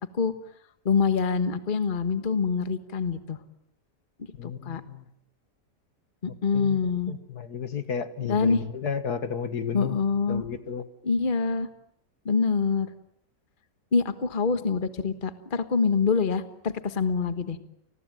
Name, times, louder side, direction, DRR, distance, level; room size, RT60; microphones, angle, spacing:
voice 1, 0.8-3.4 4.4-4.8 6.2-7.1 8.3-8.6 9.7-10.5 11.0-11.7 12.2-12.9 13.9-17.6, left 5 dB, 30° left, 10 dB, 1.4 m, -25 dB
voice 2, 4.4-5.0 6.5-6.8 7.1-10.0 10.3-10.8, left 6 dB, 65° left, 11 dB, 2.1 m, -32 dB
30.0 x 20.5 x 9.2 m, 0.77 s
omnidirectional pair, 1.9 m